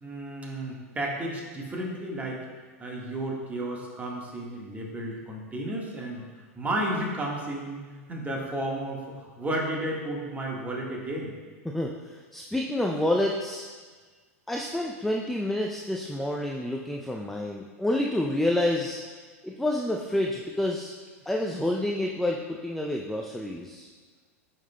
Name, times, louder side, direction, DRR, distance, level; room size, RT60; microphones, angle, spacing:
voice 1, 0.0-2.4 2.8-6.2 6.5-7.8 8.1-11.3, right 1 dB, 20° right, -2 dB, 1.5 m, -32 dB
voice 2, 11.6-13.7 14.5-19.0 19.4-20.9 21.3-23.9, left 1 dB, ahead, 0 dB, 0.4 m, -28 dB
9.1 x 5.6 x 2.2 m, 1.4 s
figure-of-eight pair, 90°, 8 cm